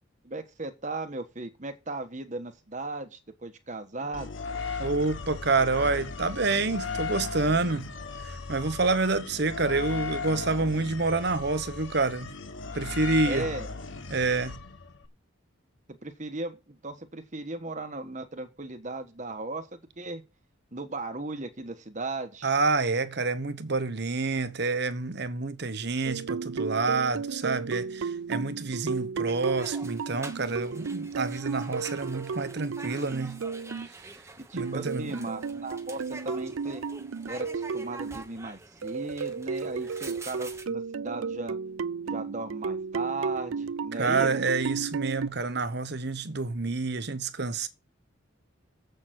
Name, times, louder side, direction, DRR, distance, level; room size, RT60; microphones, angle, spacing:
voice 1, 0.2-4.3 13.3-13.7 15.9-20.2 20.7-22.5 34.4-36.8 37.3-41.6 42.0-44.3, right 2 dB, 35° right, 1.4 m, -37 dB
sound 1, 4.1-15.1, left 4 dB, 70° left, 1.3 m, -37 dB
voice 2, 4.8-7.9 8.2-12.4 12.7-13.5 14.1-14.6 22.4-33.4 34.5-35.1 43.9-47.7, right 3 dB, 55° right, 1.0 m, -28 dB
sound 2, 26.1-33.9 34.6-38.2 38.8-45.3, right 5 dB, 85° right, 0.5 m, -34 dB
sound 3, 29.3-40.6, right 3 dB, 15° right, 1.1 m, -46 dB
7.9 x 6.7 x 7.7 m
head